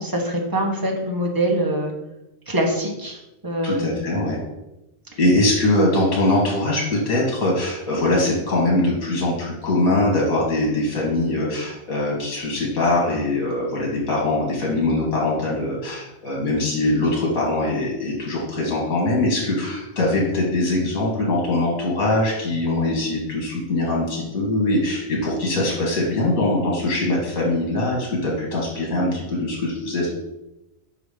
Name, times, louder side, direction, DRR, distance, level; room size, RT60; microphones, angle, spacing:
voice 1, 0.0-1.9 2.5-4.0, right 1 dB, 20° right, 1 dB, 0.9 m, -24 dB
voice 2, 3.6-4.4 5.2-30.1, left 2 dB, 80° left, -3 dB, 1.9 m, -22 dB
5.6 x 4.0 x 4.9 m, 0.94 s
omnidirectional pair, 1.4 m